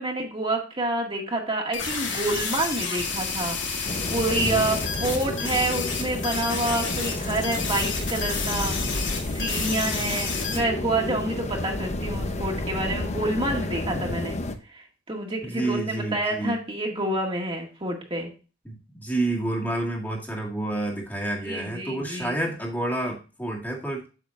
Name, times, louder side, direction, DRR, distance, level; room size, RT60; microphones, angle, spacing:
voice 1, 0.0-8.8 9.3-14.4 14.7-18.3 21.4-22.3, right 2 dB, 30° right, -1 dB, 2.0 m, -28 dB
sound 1, 1.7-10.6, left 5 dB, 70° left, 2.7 m, -30 dB
sound 2, 3.9-14.6, left 1 dB, 35° left, 0.8 m, -31 dB
voice 2, 4.4-4.7 15.4-16.5 18.6-24.1, right 2 dB, 10° left, -2 dB, 2.0 m, -29 dB
8.1 x 7.4 x 2.5 m, 0.33 s
head